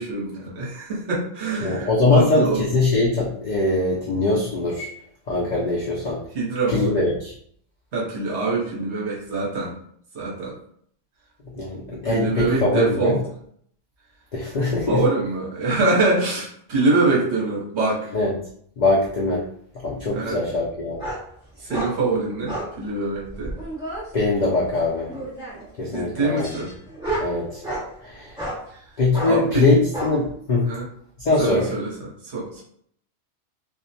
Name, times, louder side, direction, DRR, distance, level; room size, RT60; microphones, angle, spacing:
voice 1, 0.0-2.6 6.3-7.0 7.9-9.7 10.1-10.5 11.9-13.2 14.9-18.1 20.1-20.4 21.6-23.6 25.9-26.7 28.7-28.8 29.2-29.8 30.7-30.9 31.4-32.6, right 3 dB, 65° right, -4 dB, 1.0 m, -24 dB
voice 2, 1.6-4.9 5.3-6.2 6.7-7.3 11.5-13.2 14.3-15.0 18.1-18.3 18.8-19.5 19.8-21.0 24.1-25.1 25.8-26.6 27.2-27.6 28.0-28.4 29.0-30.7 31.2-31.7, left 2 dB, 65° left, -4 dB, 0.4 m, -22 dB
sound 1, 21.0-21.2 21.7-21.9 22.5-22.7 23.3-24.0 25.1-25.7 26.4-27.9 28.4-28.6 29.1-29.3 29.9-30.1, right 1 dB, 5° right, 1.0 m, -30 dB
2.4 x 2.1 x 2.7 m, 0.64 s
omnidirectional pair, 1.3 m